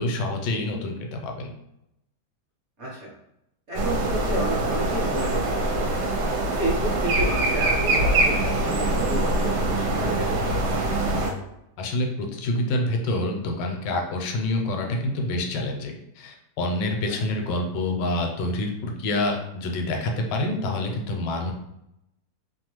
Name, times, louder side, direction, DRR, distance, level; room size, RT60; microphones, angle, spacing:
voice 1, 0.0-1.5 11.8-21.5, left 2 dB, 80° left, 2 dB, 1.2 m, -27 dB
voice 2, 2.8-3.1 3.7-11.0, right 2 dB, 50° right, -5 dB, 0.9 m, -31 dB
sound 1, 3.7-11.3, right 2 dB, 75° right, 1.1 m, -24 dB
2.9 x 2.2 x 3.0 m, 0.83 s
omnidirectional pair, 1.9 m